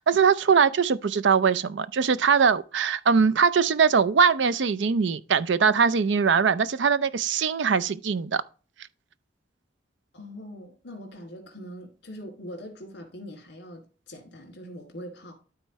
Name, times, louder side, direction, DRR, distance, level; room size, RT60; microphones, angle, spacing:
voice 1, 0.0-8.4, right 6 dB, 70° right, 0.5 m, -21 dB
voice 2, 10.1-15.3, equal, 60° left, 2.7 m, -42 dB
12.5 x 4.4 x 3.1 m
head